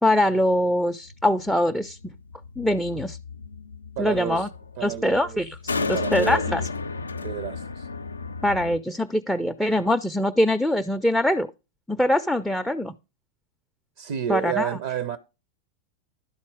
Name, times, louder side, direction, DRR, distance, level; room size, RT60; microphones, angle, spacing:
voice 1, 0.0-2.0 2.6-3.2 4.0-4.5 4.8-5.5 5.9-6.6 8.4-11.5 11.9-12.9 14.3-14.7, left 1 dB, ahead, 0.4 m, -23 dB
sound 1, 1.1-8.8, left 4 dB, 75° left, 0.3 m, -33 dB
voice 2, 4.0-4.5 4.8-5.4 5.8-6.7 7.2-7.9 14.0-15.2, right 10 dB, 55° right, 0.5 m, -31 dB
11.5 x 4.2 x 4.7 m
figure-of-eight pair, 90°, 0 cm